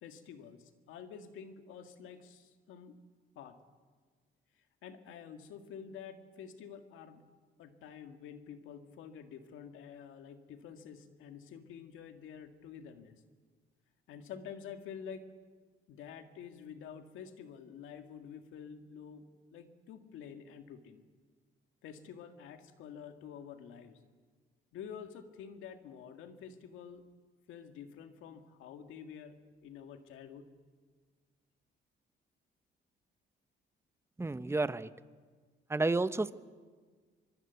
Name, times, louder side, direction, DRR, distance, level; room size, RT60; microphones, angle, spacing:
voice 1, 0.0-3.0 3.4-3.6 4.5-7.2 7.6-13.2 14.1-15.3 15.9-19.3 19.5-21.0 21.8-24.0 24.7-27.0 27.5-30.5, left 7 dB, 90° left, 7 dB, 2.0 m, -49 dB
voice 2, 34.2-34.9 35.7-36.3, right 2 dB, 15° right, 13 dB, 0.9 m, -31 dB
25.0 x 22.0 x 8.2 m, 1.5 s
cardioid pair, 90°, 20 cm